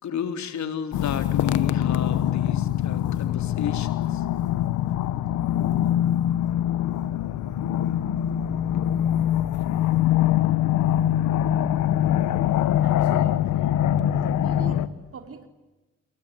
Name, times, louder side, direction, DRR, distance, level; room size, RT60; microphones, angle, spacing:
voice 1, 0.0-4.2, left 7 dB, 65° left, 8 dB, 3.7 m, -32 dB
sound 1, 0.9-14.9, left 11 dB, 85° left, 1.5 m, -23 dB
voice 2, 12.8-13.8 14.4-15.5, right 6 dB, 50° right, 7 dB, 4.3 m, -42 dB
28.0 x 22.5 x 8.5 m, 1.1 s
cardioid pair, 90°, 30 cm